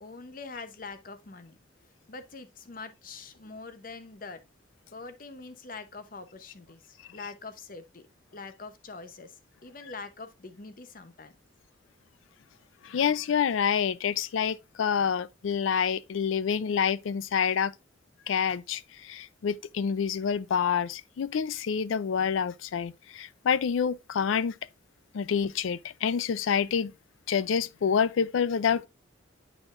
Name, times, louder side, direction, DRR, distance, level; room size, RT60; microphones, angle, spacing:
voice 1, 0.0-1.6 2.1-4.4 4.9-8.1 8.3-11.3, left 4 dB, 45° left, 0.7 m, -44 dB
voice 2, 12.8-17.7 18.3-24.6 25.1-26.9 27.3-28.9, left 7 dB, 80° left, 0.4 m, -27 dB
8.9 x 4.4 x 2.4 m
head